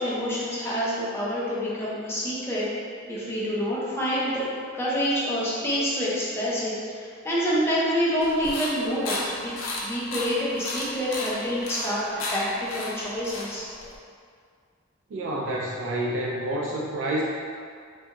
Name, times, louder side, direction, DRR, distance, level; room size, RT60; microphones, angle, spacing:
voice 1, 0.0-2.7 3.1-4.5 4.7-6.7 7.0-9.5 9.8-12.0 12.3-13.7, equal, 10° left, -8 dB, 0.5 m, -27 dB
sound 1, 8.2-14.0, left 2 dB, 80° left, 0.5 m, -34 dB
voice 2, 15.1-17.2, right 1 dB, 65° right, -3 dB, 0.3 m, -28 dB
2.5 x 2.2 x 2.8 m, 2.1 s
head